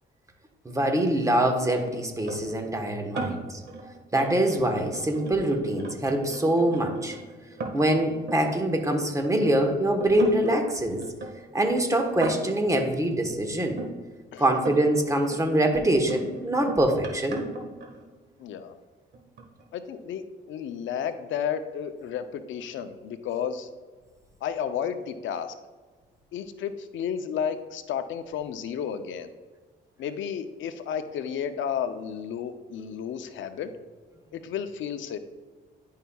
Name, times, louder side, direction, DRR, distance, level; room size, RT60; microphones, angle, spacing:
voice 1, 0.6-3.6 4.1-7.2 7.7-11.0 11.5-13.8 14.4-17.4, right 1 dB, 15° right, 4 dB, 1.1 m, -24 dB
sound 1, 2.3-9.5 10.0-13.9 14.5-15.0 15.3-18.5 19.1-19.6, right 3 dB, 55° right, 1.6 m, -38 dB
voice 2, 18.4-18.8 19.7-20.2 20.5-23.7 24.4-25.5 26.3-29.3 30.0-33.7 34.3-35.2, left 8 dB, 75° left, 9 dB, 0.5 m, -32 dB
10.5 x 5.6 x 2.3 m, 1.4 s
cardioid pair, 90°, 20 cm